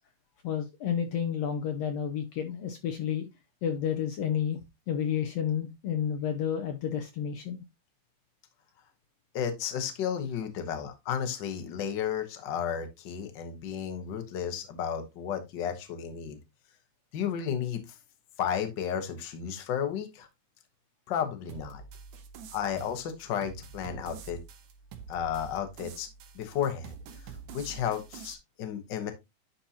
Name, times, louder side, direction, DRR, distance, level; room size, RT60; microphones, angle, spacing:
voice 1, 0.4-3.3 3.6-4.6 4.9-7.6, left 8 dB, 70° left, 1.7 m, -30 dB
voice 2, 9.3-16.4 17.1-18.0 18.4-20.3 21.1-21.8 22.5-24.4 25.1-26.1 26.3-27.0 27.5-29.1, left 8 dB, 50° left, 1.5 m, -33 dB
sound 1, 21.5-28.3, right 5 dB, 80° right, 2.3 m, -47 dB
11.0 x 4.3 x 2.8 m
omnidirectional pair, 3.3 m